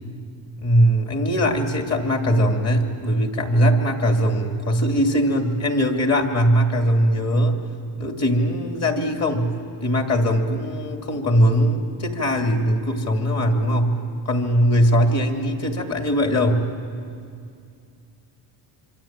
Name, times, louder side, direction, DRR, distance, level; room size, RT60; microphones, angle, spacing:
voice 1, 0.6-7.6 8.0-14.0 14.3-16.7, equal, 35° left, 3 dB, 2.8 m, -20 dB
25.5 x 25.5 x 8.9 m, 2.3 s
cardioid pair, 145°, 46 cm